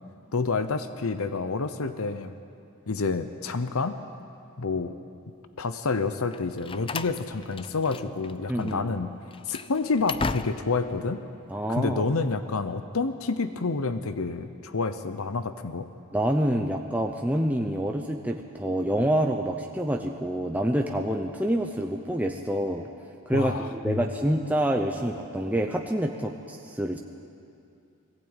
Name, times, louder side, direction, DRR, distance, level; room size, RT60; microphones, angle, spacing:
voice 1, 0.3-2.3 2.9-4.0 4.6-5.0 5.6-9.1 9.5-11.2 11.7-15.9 23.3-24.0, left 4 dB, 75° left, 10 dB, 0.8 m, -28 dB
Slam, 6.3-8.3 8.6-8.8 9.3-10.9, left 4 dB, 25° left, 0.4 m, -35 dB
voice 2, 8.5-8.9 11.5-12.0 16.1-22.9 23.3-27.0, right 1 dB, 5° right, 2 dB, 0.7 m, -27 dB
20.5 x 15.0 x 9.0 m, 2.6 s
head